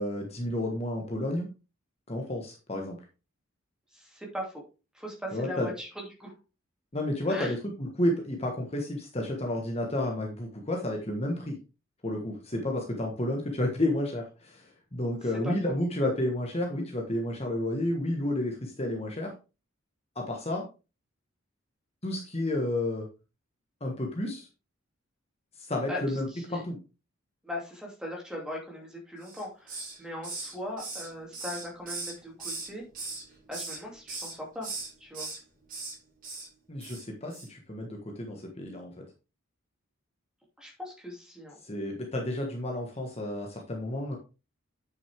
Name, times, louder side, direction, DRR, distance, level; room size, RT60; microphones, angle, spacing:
voice 1, 0.0-1.5 2.1-3.0 5.3-5.7 6.9-11.6 12.0-19.3 20.1-20.6 22.0-23.1 23.8-24.5 25.6-26.7 36.7-39.0 41.6-44.2, left 1 dB, 30° left, 1 dB, 1.4 m, -31 dB
voice 2, 3.9-4.5 4.9-6.3 7.3-7.5 15.2-15.7 25.9-26.6 27.4-32.8 33.5-34.7 35.0-35.3 40.6-41.6, left 1 dB, 5° right, -1 dB, 2.7 m, -39 dB
Hiss, 29.2-30.0 30.2-32.7 32.9-33.8 34.1-34.3 34.6-35.4 35.7-35.9 36.2-36.5 36.8-37.0 37.3-37.5, right 3 dB, 40° right, 5.1 m, -38 dB
8.7 x 6.5 x 3.5 m, 0.30 s
head